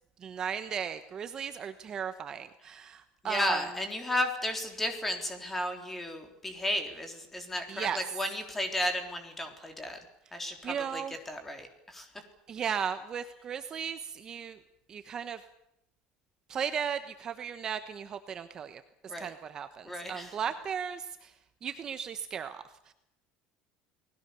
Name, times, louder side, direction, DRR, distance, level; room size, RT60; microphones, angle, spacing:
voice 1, 0.2-3.6 7.7-8.0 10.6-11.2 12.5-14.6 14.9-15.4 16.5-21.3 21.6-22.9, right 7 dB, 25° right, 9 dB, 1.1 m, -36 dB
voice 2, 3.2-10.0 10.3-12.1 12.6-12.7 19.1-19.3 19.9-20.4, left 1 dB, 10° left, 6 dB, 3.7 m, -34 dB
30.0 x 20.0 x 6.9 m, 0.80 s
cardioid pair, 170°, 2 cm